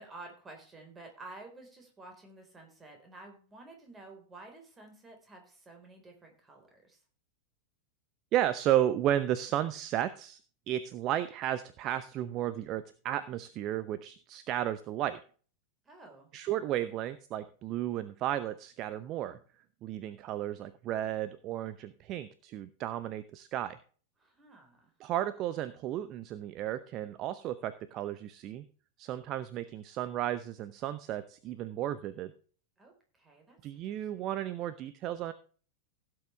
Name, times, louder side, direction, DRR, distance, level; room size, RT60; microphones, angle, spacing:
voice 1, 0.0-7.0 15.8-16.3 24.2-24.9 32.8-34.3, right 2 dB, 15° right, 3 dB, 4.4 m, -51 dB
voice 2, 8.3-10.4 10.7-15.2 16.3-19.4 19.8-23.8 25.0-28.6 29.0-32.3 33.6-35.3, right 12 dB, 35° right, 14 dB, 0.8 m, -33 dB
16.5 x 7.9 x 3.4 m, 0.41 s
figure-of-eight pair, 90°, 0 cm